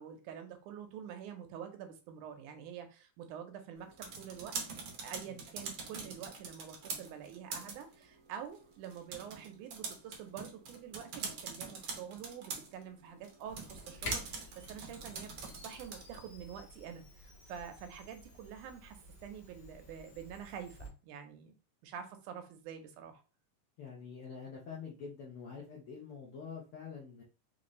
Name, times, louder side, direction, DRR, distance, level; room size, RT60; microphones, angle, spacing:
voice 1, 0.0-3.9 4.2-4.5 5.0-15.3 15.6-21.5 21.8-23.2, right 8 dB, 90° right, 7 dB, 2.2 m, -47 dB
sound 1, 3.8-16.3, right 4 dB, 70° right, 1.1 m, -45 dB
Camera, 13.5-20.9, left 2 dB, 45° left, 1.2 m, -50 dB
voice 2, 23.8-27.2, left 6 dB, 70° left, -3 dB, 1.3 m, -46 dB
5.3 x 2.6 x 3.1 m, 0.34 s
omnidirectional pair, 3.5 m